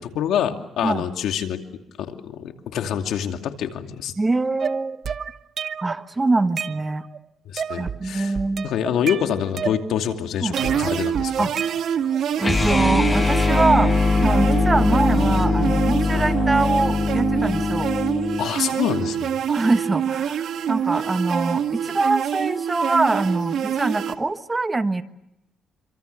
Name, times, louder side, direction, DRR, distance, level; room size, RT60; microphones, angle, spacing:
voice 1, 0.0-1.6 2.1-4.1 7.5-8.3 8.6-11.5 16.1-16.2 18.4-19.4, left 9 dB, 80° left, 5 dB, 2.5 m, -26 dB
voice 2, 4.2-5.0 5.8-7.1 7.8-8.7 10.4-10.5 11.4-11.5 12.4-13.9 14.2-17.9 19.5-25.0, right 3 dB, 20° right, 10 dB, 1.3 m, -23 dB
sound 1, 4.6-6.0 6.4-7.2 7.6-8.0 8.3-10.1 10.6-12.2, right 7 dB, 55° right, 1.0 m, -31 dB
sound 2, 10.5-24.1, right 9 dB, 70° right, 1.8 m, -26 dB
sound 3, 12.4-18.5, left 4 dB, 25° left, 1.5 m, -21 dB
27.0 x 25.5 x 6.8 m, 0.82 s
cardioid pair, 90°, 0 cm